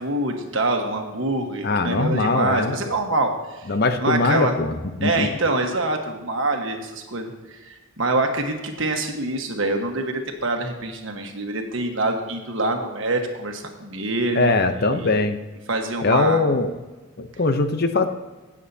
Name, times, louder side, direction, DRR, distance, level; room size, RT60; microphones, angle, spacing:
voice 1, 0.0-4.6 5.0-14.5 14.9-15.1 15.7-16.4, right 2 dB, 65° right, 4 dB, 1.4 m, -25 dB
voice 2, 1.6-2.7 3.7-5.3 14.3-15.4 16.0-16.7 17.2-18.1, left 3 dB, 50° left, 8 dB, 0.7 m, -21 dB
17.0 x 7.3 x 2.8 m, 1.2 s
head